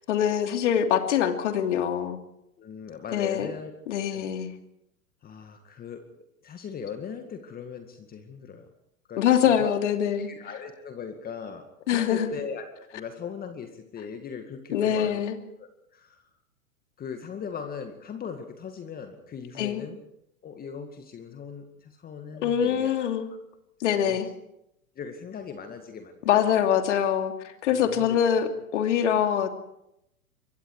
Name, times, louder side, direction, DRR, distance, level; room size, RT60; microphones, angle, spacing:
voice 1, 0.1-2.2 3.1-3.5 3.9-4.5 9.2-10.3 11.9-12.3 14.7-15.4 19.6-19.8 22.4-23.3 23.8-24.3 26.3-29.5, left 9 dB, 55° left, 6 dB, 2.9 m, -24 dB
voice 2, 2.6-3.7 4.1-4.3 5.2-6.0 6.4-8.7 9.1-9.7 10.3-12.7 12.9-15.2 15.6-16.3 17.0-20.0 20.4-23.1 23.8-24.2 25.0-26.6 27.7-28.4, left 6 dB, 20° left, 6 dB, 2.1 m, -39 dB
26.5 x 22.5 x 4.9 m, 0.81 s
figure-of-eight pair, 100°, 42 cm